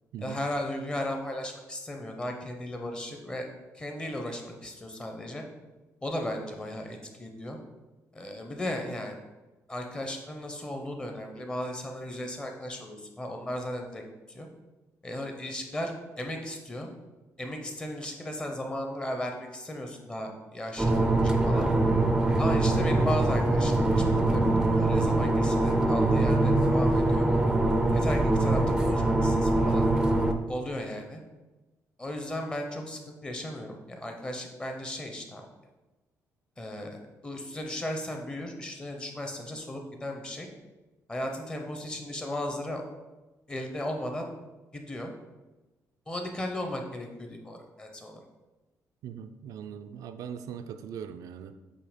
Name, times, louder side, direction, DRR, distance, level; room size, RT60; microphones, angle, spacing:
voice 1, 0.2-3.5 3.7-5.4 6.0-7.6 8.1-9.1 9.7-14.0 14.3-14.5 15.0-16.9 17.4-21.7 22.4-27.3 27.9-29.9 30.5-31.2 32.0-35.5 36.6-40.5 41.1-42.8 43.5-44.3 44.7-45.1 46.1-48.2, left 1 dB, 15° left, 3 dB, 0.8 m, -36 dB
sound 1, 20.8-30.3, right 2 dB, 10° right, 0.5 m, -23 dB
voice 2, 49.0-51.6, right 8 dB, 80° right, 8 dB, 0.4 m, -40 dB
8.4 x 2.8 x 5.0 m, 1.1 s
cardioid pair, 165°, 6 cm